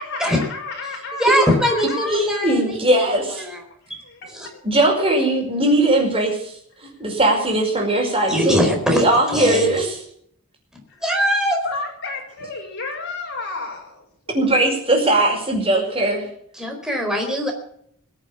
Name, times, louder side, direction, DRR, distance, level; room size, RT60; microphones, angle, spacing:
voice 1, 0.0-2.2 3.9-4.6 11.6-14.0, left 3 dB, 55° left, 0 dB, 5.2 m, -32 dB
voice 2, 0.8-3.6 3.9-4.0 4.3-4.5 8.3-9.8 11.0-11.6 16.5-17.5, equal, 5° right, 2 dB, 4.5 m, -22 dB
voice 3, 2.1-3.5 4.6-6.5 7.0-8.7 8.9-9.9 14.3-16.3, right 1 dB, 25° right, 1 dB, 5.2 m, -19 dB
21.5 x 8.1 x 7.2 m, 0.67 s
head